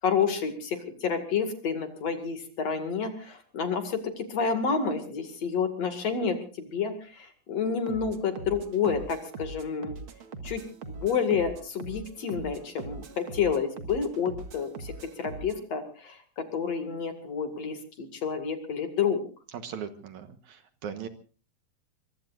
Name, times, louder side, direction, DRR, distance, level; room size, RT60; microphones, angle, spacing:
voice 1, 0.0-9.9 10.4-10.6 10.9-19.2, left 6 dB, 50° left, 8 dB, 3.1 m, -29 dB
sound 1, 7.9-15.6, right 3 dB, 45° right, 2.1 m, -42 dB
voice 2, 19.5-21.1, right 7 dB, 65° right, 9 dB, 2.4 m, -39 dB
23.5 x 23.0 x 2.6 m, 0.37 s
omnidirectional pair, 4.0 m